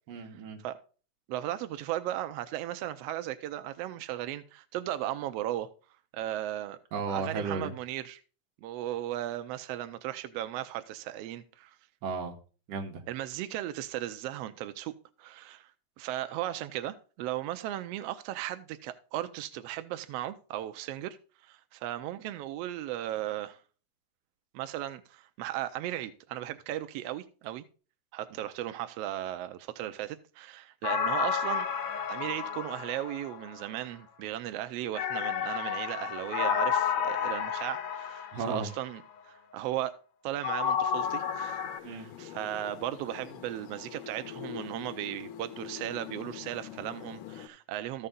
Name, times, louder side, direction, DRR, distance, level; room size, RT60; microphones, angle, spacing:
voice 1, 0.1-0.6 6.9-7.7 12.0-12.4 12.7-13.0 38.3-38.7 41.8-42.1, right 4 dB, 60° right, 2.3 m, -34 dB
voice 2, 1.3-5.7 6.1-6.8 7.1-8.2 8.6-11.8 13.1-14.9 15.2-15.7 16.0-21.2 21.4-23.6 24.5-27.6 28.1-31.7 32.1-40.0 40.2-48.1, right 13 dB, 85° right, 1.4 m, -36 dB
sound 1, 30.8-33.7 34.9-38.8 40.4-41.8, left 7 dB, 65° left, 1.5 m, -31 dB
sound 2, 40.9-47.5, left 10 dB, 85° left, 2.3 m, -44 dB
13.5 x 5.5 x 3.7 m
omnidirectional pair, 3.5 m